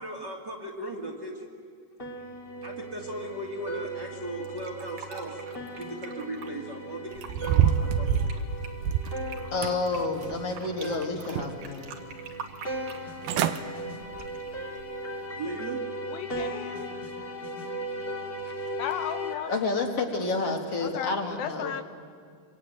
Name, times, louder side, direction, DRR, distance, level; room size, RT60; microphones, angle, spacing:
voice 1, 0.0-1.5 2.6-5.4 5.8-8.4 15.3-15.8, right 1 dB, 35° right, 0 dB, 2.1 m, -37 dB
sound 1, 2.0-19.3, right 1 dB, 20° left, 1.7 m, -38 dB
Fill (with liquid), 4.4-6.5 7.1-7.7 8.0-10.9 11.2-13.6 14.1-14.5, right 6 dB, 60° right, 3.1 m, -44 dB
sound 2, 7.2-9.2 9.6-10.5 10.8-11.7 12.1-12.2 12.9-13.0 13.2-13.6 14.1-14.3 14.8-14.9, right 9 dB, 85° right, 2.8 m, -27 dB
voice 2, 9.5-11.9 18.6-18.7 19.5-21.8, left 3 dB, 45° left, 2 dB, 2.6 m, -29 dB
voice 3, 16.1-17.0 18.8-19.5 20.8-21.8, left 9 dB, 75° left, 9 dB, 2.5 m, -35 dB
25.0 x 24.5 x 9.3 m, 2.1 s
omnidirectional pair, 4.4 m